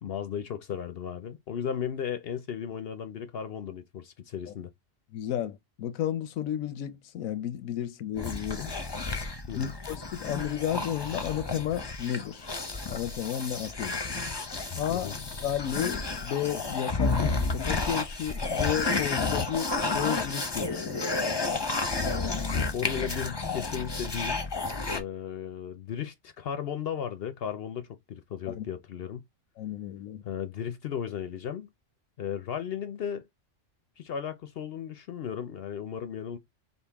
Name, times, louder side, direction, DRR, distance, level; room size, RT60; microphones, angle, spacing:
voice 1, 0.0-4.7 9.5-9.7 14.9-15.2 22.5-24.4 24.8-29.2 30.2-31.7 32.2-33.3 34.0-36.4, left 8 dB, 60° left, 0.7 m, -35 dB
voice 2, 5.1-8.7 9.6-12.5 12.9-14.0 14.8-21.1 28.5-28.7 29.6-30.2, left 10 dB, 85° left, 1.1 m, -33 dB
sound 1, 8.1-25.0, left 3 dB, 25° left, 0.6 m, -31 dB
5.2 x 2.4 x 3.4 m
omnidirectional pair, 1.4 m